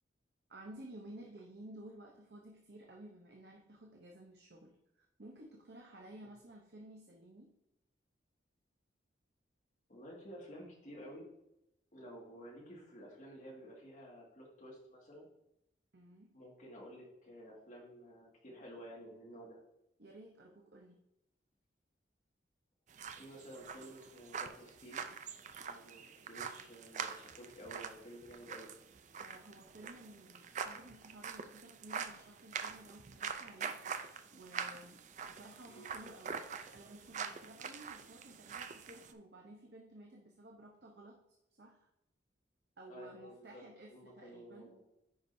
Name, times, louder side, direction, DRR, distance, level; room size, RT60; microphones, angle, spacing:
voice 1, 0.5-7.5 15.9-16.3 20.0-21.0 29.2-33.8 34.3-36.4 36.7-41.2 41.6-41.9 42.8-44.7, right 1 dB, 60° right, 0 dB, 0.8 m, -54 dB
voice 2, 9.9-11.3 11.9-15.3 16.3-19.6 23.2-25.1 25.6-28.7 35.6-35.9 42.9-43.6 43.9-44.8, equal, 40° left, -3 dB, 2.0 m, -52 dB
sound 1, 22.9-39.1, right 6 dB, 40° right, 0.4 m, -45 dB
9.6 x 5.1 x 2.6 m, 0.82 s
head